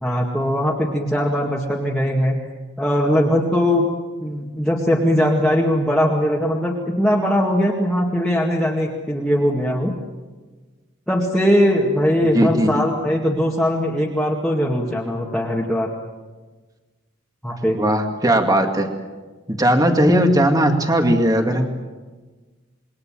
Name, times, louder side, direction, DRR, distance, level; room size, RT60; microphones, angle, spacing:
voice 1, 0.0-2.4 2.8-3.9 4.2-9.9 11.1-15.9 17.4-17.8, equal, 5° left, -4 dB, 2.0 m, -20 dB
voice 2, 12.3-12.8 17.7-18.9 19.5-21.7, equal, 20° right, 4 dB, 2.2 m, -18 dB
28.0 x 22.5 x 7.6 m, 1.3 s
head